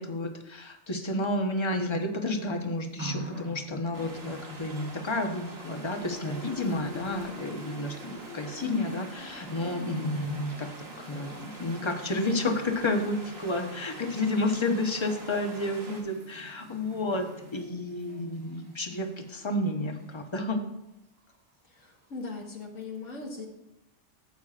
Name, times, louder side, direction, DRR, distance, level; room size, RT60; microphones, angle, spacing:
voice 1, 0.0-10.7 11.0-20.6, left 2 dB, 25° left, 3 dB, 0.9 m, -31 dB
sound 1, 3.0-5.3 5.7-20.4 21.3-21.4, right 1 dB, 60° right, 2.5 m, -46 dB
sound 2, 3.9-16.0, right 2 dB, 85° right, 2.0 m, -46 dB
voice 2, 21.7-23.5, left 3 dB, 70° left, -1 dB, 1.7 m, -39 dB
13.5 x 8.2 x 2.5 m, 0.86 s
omnidirectional pair, 1.3 m